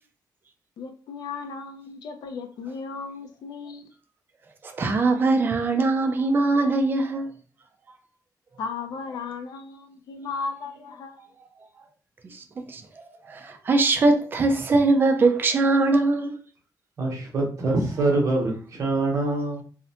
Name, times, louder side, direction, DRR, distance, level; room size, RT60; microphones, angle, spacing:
voice 1, 0.8-3.8 8.6-11.3, left 4 dB, 70° left, 0.4 m, -35 dB
voice 2, 4.6-7.3 12.3-16.4, right 3 dB, 30° right, 0.4 m, -22 dB
voice 3, 17.0-19.6, right 2 dB, 45° right, 0.8 m, -24 dB
2.6 x 2.0 x 2.7 m
wide cardioid pair, 175°, 7 cm